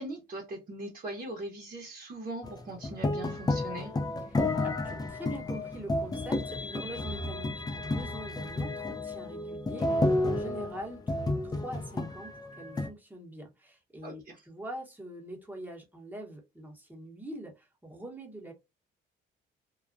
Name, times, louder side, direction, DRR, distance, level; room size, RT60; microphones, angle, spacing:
voice 1, 0.0-3.9 14.0-14.4, right 2 dB, 45° right, 0.9 m, -40 dB
sound 1, 2.4-12.9, left 2 dB, 20° left, 0.5 m, -31 dB
voice 2, 4.3-18.5, right 1 dB, 10° right, 1.0 m, -44 dB
2.3 x 2.1 x 2.5 m
cardioid pair, 90°, 20 cm